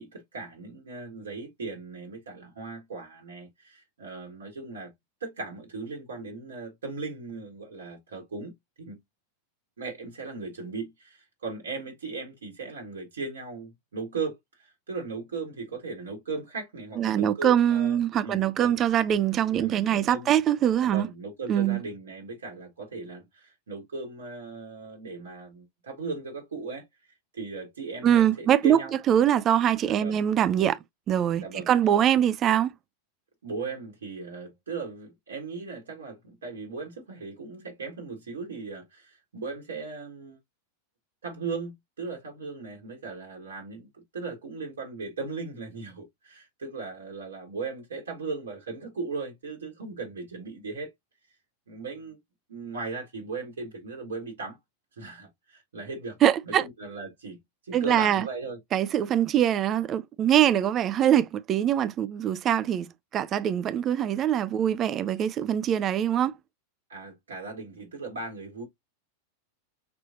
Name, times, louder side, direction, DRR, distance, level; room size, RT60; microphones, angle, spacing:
voice 1, 0.0-4.9 5.2-8.5 8.8-9.0 9.8-18.8 19.5-20.3 20.8-29.2 29.9-30.2 31.4-31.7 33.4-40.4 41.2-50.9 51.7-52.2 52.5-54.6 55.0-56.2 56.4-58.6 66.9-68.6, right 4 dB, 65° right, 1.7 m, -37 dB
voice 2, 17.0-21.1 21.5-21.8 28.0-28.8 29.1-30.8 31.1-32.7 56.2-56.6 57.7-58.3 58.7-66.3, right 10 dB, 30° right, 0.4 m, -23 dB
5.9 x 3.2 x 2.5 m
figure-of-eight pair, 90°, 0 cm